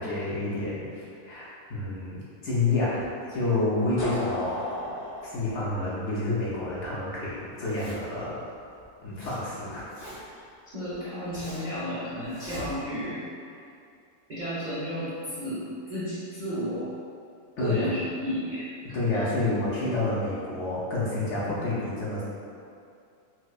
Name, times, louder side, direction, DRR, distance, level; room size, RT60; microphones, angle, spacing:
voice 1, 0.0-4.6 5.2-8.4 9.0-9.9 10.3-10.4 17.6-17.9 18.9-22.2, left 2 dB, 60° left, -8 dB, 0.8 m, -29 dB
sound 1, 4.0-6.8, left 1 dB, 80° left, 1.7 m, -35 dB
Zipper (clothing), 7.5-8.2 8.8-9.4 9.7-10.4 10.9-11.8 12.2-13.1, equal, 35° right, 0.8 m, -43 dB
voice 2, 10.7-13.3 14.3-16.9 17.6-18.7 21.5-21.6, equal, 55° right, -12 dB, 0.5 m, -32 dB
4.4 x 2.1 x 2.3 m, 2.5 s
omnidirectional pair, 1.6 m